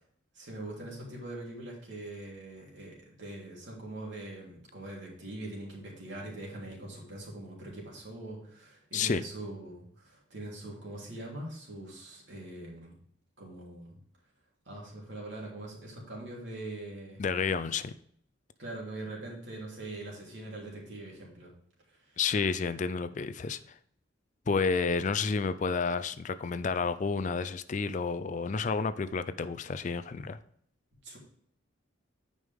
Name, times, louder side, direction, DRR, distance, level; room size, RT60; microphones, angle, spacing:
voice 1, 0.3-13.0 13.4-14.0 14.6-17.2 18.6-21.5 21.9-22.2 31.0-31.2, right 2 dB, 60° right, -3 dB, 3.1 m, -42 dB
voice 2, 17.2-17.9 22.2-23.6 24.5-30.4, left 5 dB, 40° left, 12 dB, 0.4 m, -30 dB
9.5 x 5.3 x 3.5 m, 0.66 s
head